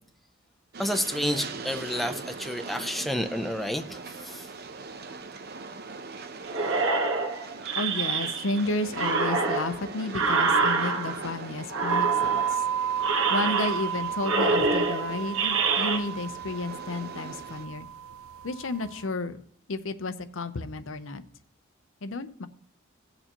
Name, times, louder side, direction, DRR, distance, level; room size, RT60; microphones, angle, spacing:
Train, 0.7-17.7, right 4 dB, 50° right, 0.7 m, -41 dB
voice 1, 0.8-4.5, equal, ahead, 6 dB, 0.5 m, -30 dB
sound 1, 6.5-8.6 8.9-11.3 11.7-12.6 13.0-14.0 14.2-16.0, right 4 dB, 70° right, 1.1 m, -26 dB
voice 2, 7.8-12.6 13.3-17.9 18.4-19.4 19.7-21.2 22.0-22.5, left 2 dB, 70° left, 11 dB, 0.7 m, -32 dB
sound 2, 11.9-19.1, right 8 dB, 90° right, 0.4 m, -32 dB
17.0 x 6.8 x 2.9 m, 0.62 s
head